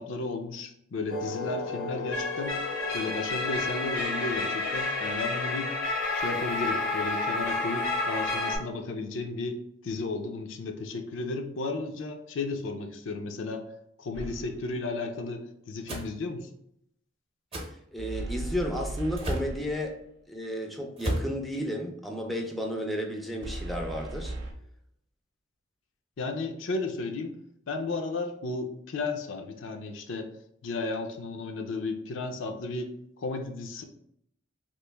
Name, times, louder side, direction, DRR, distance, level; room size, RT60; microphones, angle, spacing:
voice 1, 0.0-2.6 2.9-5.7 6.1-9.6 9.8-13.6 14.0-16.5 26.2-27.4 27.7-30.3 30.6-32.9 33.2-33.8, left 3 dB, 70° left, 5 dB, 0.5 m, -34 dB
sound 1, 1.1-8.6, left 3 dB, 90° left, 1.0 m, -30 dB
sound 2, 14.1-14.8 18.0-20.0 23.4-24.5, right 2 dB, 65° right, 0.5 m, -37 dB
sound 3, 15.9-16.1 17.5-17.7 19.2-19.5 21.0-21.3, equal, 30° right, 0.7 m, -31 dB
voice 2, 17.6-20.0 20.3-24.3, equal, ahead, 1 dB, 0.4 m, -33 dB
3.0 x 2.4 x 3.4 m, 0.74 s
head